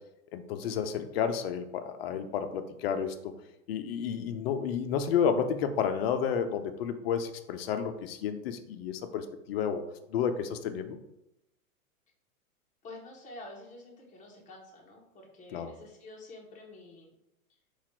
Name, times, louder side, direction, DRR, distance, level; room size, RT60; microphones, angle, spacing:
voice 1, 0.3-3.3 3.7-9.8 10.1-11.0 15.5-15.7, left 7 dB, 45° left, 8 dB, 0.5 m, -31 dB
voice 2, 12.8-17.2 17.5-17.6, left 2 dB, 15° left, -2 dB, 1.0 m, -48 dB
4.0 x 2.4 x 4.3 m, 0.86 s
hypercardioid pair, 135°, 43 cm